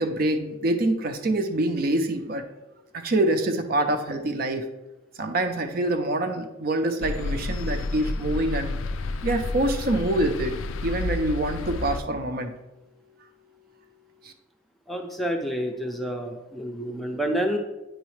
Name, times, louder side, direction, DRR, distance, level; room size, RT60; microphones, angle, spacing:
voice 1, 0.0-2.4 2.9-4.6 5.2-8.7 9.2-10.6 10.8-12.5 14.2-14.3, right 1 dB, 50° right, 6 dB, 0.5 m, -25 dB
sound 1, 7.0-12.0, left 2 dB, 90° left, 0.4 m, -30 dB
voice 2, 14.9-17.6, equal, ahead, 2 dB, 0.5 m, -28 dB
9.1 x 3.9 x 3.2 m, 1.0 s
head